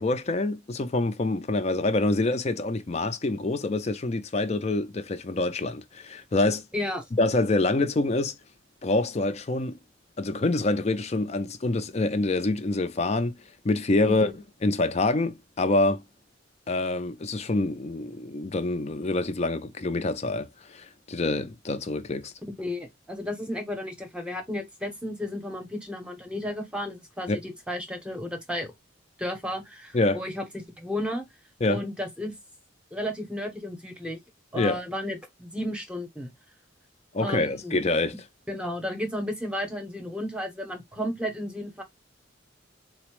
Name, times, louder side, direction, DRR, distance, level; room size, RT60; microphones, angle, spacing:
voice 1, 0.0-6.6 7.2-8.4 8.8-9.8 10.2-13.4 13.6-14.3 14.6-16.0 16.7-22.3 27.3-27.4 29.9-30.2 31.6-31.8 34.5-34.8 37.1-38.2, left 2 dB, 35° left, 0.5 m, -26 dB
voice 2, 6.7-7.1 14.0-14.3 22.4-28.7 29.2-31.2 31.7-32.3 32.9-34.2 34.5-36.3 37.2-37.8 38.5-41.8, left 1 dB, 5° right, 0.8 m, -33 dB
4.1 x 2.0 x 3.0 m
head